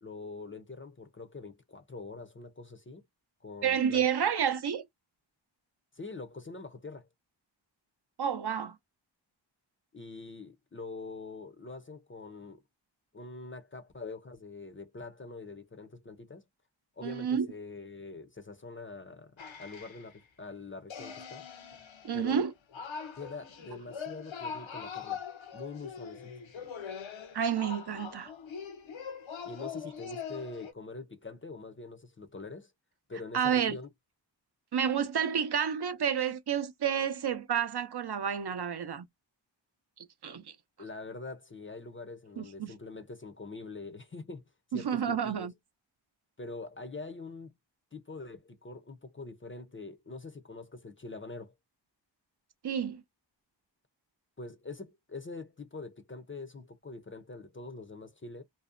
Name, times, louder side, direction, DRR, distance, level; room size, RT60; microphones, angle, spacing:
voice 1, 0.0-3.0 3.4-4.0 5.9-7.1 9.9-12.6 13.1-16.4 17.0-21.5 22.1-22.5 23.2-25.2 25.5-26.3 29.4-32.7 33.1-33.9 40.8-44.4 44.7-45.5 46.4-47.5 47.9-51.5 54.4-58.4, left 3 dB, 30° left, 0.4 m, -44 dB
voice 2, 3.6-4.8 8.2-8.8 17.0-17.5 22.0-22.5 27.3-28.3 33.3-33.8 34.7-39.1 40.0-40.6 42.4-42.7 44.7-45.5 52.6-53.0, right 8 dB, 60° right, 0.6 m, -30 dB
sound 1, 19.4-20.1 20.9-30.7, left 6 dB, 80° left, 0.6 m, -42 dB
2.6 x 2.1 x 2.4 m
wide cardioid pair, 55°, 46 cm